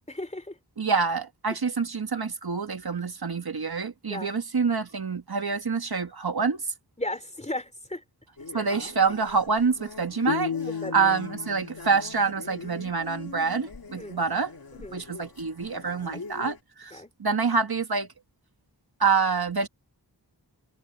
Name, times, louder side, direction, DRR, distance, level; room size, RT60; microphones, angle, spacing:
voice 1, 0.1-0.6 4.1-4.3 7.0-8.0 8.5-8.7 10.7-11.1 13.9-14.2 14.7-15.1 15.9-16.0 16.9-17.1, left 1 dB, 15° left, 3.5 m, -36 dB
voice 2, 0.8-6.6 8.5-10.5 10.9-14.5 14.9-18.1 19.0-19.7, right 5 dB, 65° right, 2.0 m, -26 dB
sound 1, 8.4-16.6, left 4 dB, 60° left, 2.4 m, -44 dB
sound 2, 10.3-13.4, left 7 dB, 90° left, 2.3 m, -35 dB
wide cardioid pair, 60°, 41 cm